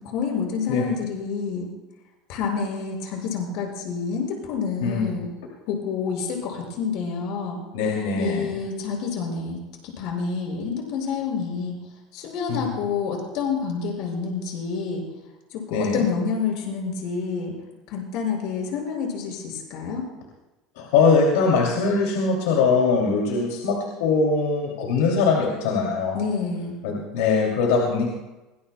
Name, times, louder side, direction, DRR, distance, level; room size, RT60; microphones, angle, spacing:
voice 1, 0.0-1.7 2.3-5.3 5.7-7.6 8.2-11.8 12.1-15.0 15.5-17.5 17.9-20.0 26.1-26.8, left 5 dB, 65° left, 0 dB, 5.8 m, -28 dB
voice 2, 4.8-5.2 7.7-8.5 12.5-12.6 15.7-16.1 20.8-26.2 26.8-28.1, left 4 dB, 85° left, -1 dB, 2.7 m, -22 dB
24.5 x 19.0 x 2.3 m, 1.0 s
supercardioid pair, 110°, 0 cm